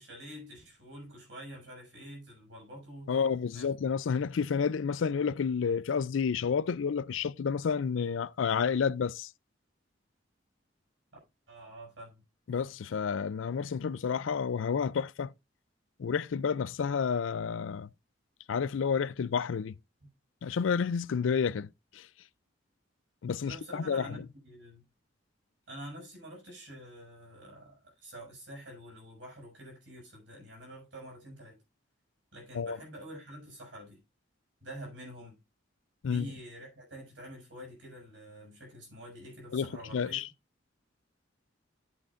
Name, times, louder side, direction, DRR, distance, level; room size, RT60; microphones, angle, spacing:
voice 1, 0.0-3.8 11.5-12.2 23.5-24.8 25.7-31.6 32.3-34.0 34.6-35.4 36.1-40.2, equal, 70° right, 7.1 m, -47 dB
voice 2, 3.1-9.3 12.5-15.3 16.0-17.9 18.5-19.7 20.4-22.1 23.2-24.2 32.5-32.8 36.0-36.3 39.5-40.3, left 6 dB, 85° left, 0.4 m, -30 dB
12.5 x 8.2 x 2.5 m
head